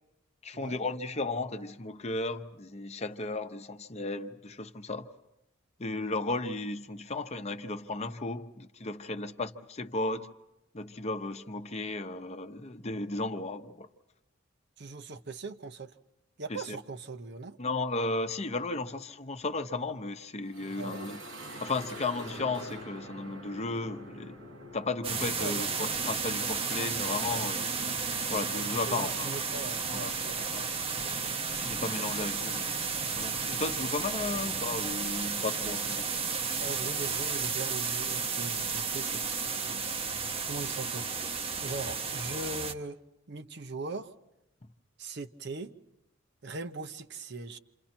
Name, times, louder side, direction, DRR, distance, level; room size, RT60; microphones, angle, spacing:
voice 1, 0.4-5.1 5.8-10.3 10.7-13.9 16.5-16.8 17.6-21.2 21.6-24.4 24.7-27.6 28.3-29.3 29.9-30.1 30.5-30.6 31.6-32.9 33.1-36.1, left 3 dB, 35° left, 0.8 m, -34 dB
voice 2, 14.8-16.0 16.4-17.6 20.8-21.1 25.4-25.7 28.9-30.7 36.6-39.9 40.4-41.1 41.6-43.0 43.3-44.1 45.0-45.7 46.4-47.6, right 3 dB, 60° right, 0.8 m, -40 dB
sound 1, 20.4-28.2, equal, 75° right, 3.3 m, -46 dB
sound 2, 25.0-42.7, right 5 dB, 30° right, 0.8 m, -33 dB
28.0 x 27.5 x 4.4 m
head